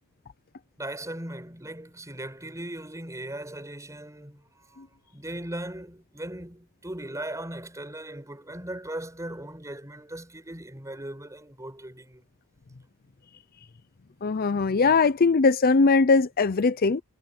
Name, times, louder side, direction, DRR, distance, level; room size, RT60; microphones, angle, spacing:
voice 1, 0.8-4.9 5.1-12.2, right 1 dB, 15° right, 5.2 m, -38 dB
voice 2, 14.2-17.0, left 4 dB, 40° left, 0.5 m, -20 dB
head